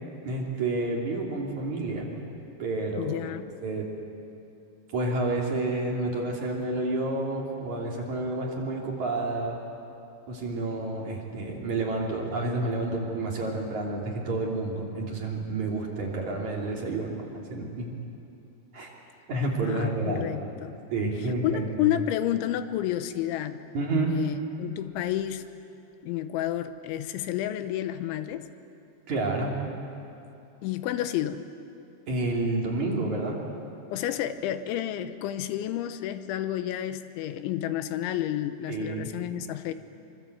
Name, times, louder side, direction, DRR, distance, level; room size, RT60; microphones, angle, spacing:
voice 1, 0.2-2.1 2.6-3.2 3.6-3.9 4.9-9.6 10.3-17.9 18.7-18.9 19.3-20.3 20.9-21.6 21.9-22.0 23.7-24.1 29.1-29.6 32.1-33.4 38.7-39.1, right 2 dB, 45° right, -2 dB, 3.9 m, -29 dB
voice 2, 3.0-3.5 19.6-20.8 21.4-23.6 24.1-25.5 26.0-28.5 30.6-31.5 33.9-39.7, left 12 dB, 90° left, 10 dB, 3.3 m, -30 dB
25.5 x 25.0 x 8.0 m, 2.7 s
omnidirectional pair, 5.4 m